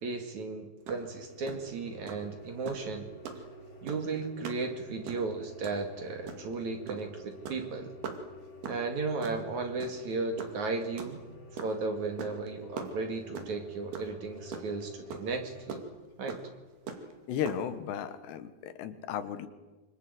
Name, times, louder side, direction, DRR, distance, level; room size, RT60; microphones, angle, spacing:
voice 1, 0.0-3.1 3.8-7.9 8.7-11.2 11.5-15.8 16.2-16.4, right 3 dB, 50° right, 6 dB, 3.1 m, -35 dB
sound 1, 0.9-1.0 1.3-1.5 2.1-2.2 2.7-2.9 3.3-3.4 3.9-4.1 4.4-4.6 4.9-5.3 5.6-5.8 6.3-6.5 6.9-7.1 7.3-7.6 8.0-8.2 8.6-8.8 9.2-9.4 9.8-10.1 10.4-11.8 12.2-12.5 12.8-13.6 13.9-14.1 14.4-14.8 15.1-15.2 15.7-15.8 16.3-16.4 16.9-17.1 17.5-17.6, right 6 dB, 70° right, 4.4 m, -39 dB
sound 2, 1.0-15.7, left 1 dB, 40° left, 4.4 m, -50 dB
voice 2, 17.3-19.5, left 9 dB, 80° left, 12 dB, 3.6 m, -35 dB
26.0 x 25.5 x 8.0 m, 1.2 s
omnidirectional pair, 4.8 m